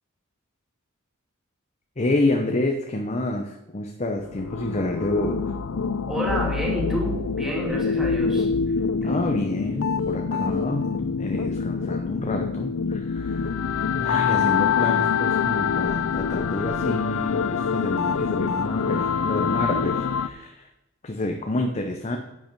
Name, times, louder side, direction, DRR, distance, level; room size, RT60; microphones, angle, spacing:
voice 1, 2.0-5.5 9.0-10.9 11.2-13.7 14.0-20.7 21.0-22.2, left 2 dB, 35° left, 3 dB, 0.8 m, -28 dB
sound 1, 4.2-20.3, left 6 dB, 80° left, 0.5 m, -25 dB
voice 2, 6.1-8.5 9.0-9.2, equal, ahead, -3 dB, 2.6 m, -29 dB
10.5 x 7.9 x 4.6 m, 0.92 s
head